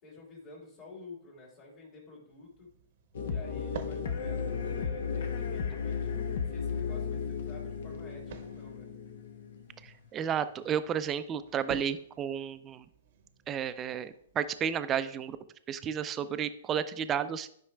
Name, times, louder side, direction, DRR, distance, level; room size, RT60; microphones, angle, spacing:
voice 1, 0.0-2.7 3.2-6.1 6.5-8.9, left 4 dB, 35° left, -7 dB, 2.8 m, -49 dB
sound 1, 2.3-14.7, right 6 dB, 55° right, 0.8 m, -51 dB
sound 2, 3.1-10.1, left 6 dB, 60° left, 0.9 m, -35 dB
voice 2, 9.8-12.8 13.5-15.4 15.7-17.5, right 8 dB, 25° right, 12 dB, 0.4 m, -32 dB
11.0 x 5.4 x 2.3 m, 0.65 s
hypercardioid pair, 115°, 0 cm